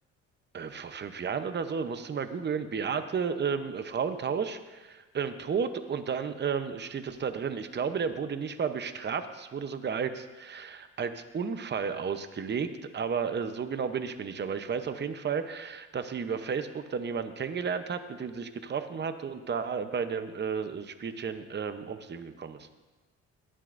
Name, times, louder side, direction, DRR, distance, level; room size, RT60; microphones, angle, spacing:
voice 1, 0.5-22.7, right 6 dB, 35° right, 9 dB, 0.8 m, -33 dB
18.0 x 11.5 x 2.6 m, 1.2 s
cardioid pair, 90°, 30 cm